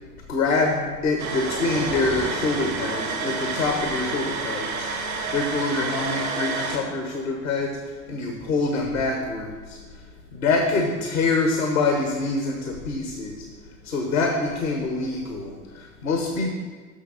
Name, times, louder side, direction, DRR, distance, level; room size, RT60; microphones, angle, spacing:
voice 1, 0.3-4.9 5.3-10.0 10.3-13.5 13.8-16.5, left 3 dB, 85° left, 2 dB, 1.1 m, -25 dB
sound 1, 1.2-6.8, right 4 dB, 80° right, 1.5 m, -29 dB
7.0 x 5.8 x 6.9 m, 1.5 s
figure-of-eight pair, 55°, 40 cm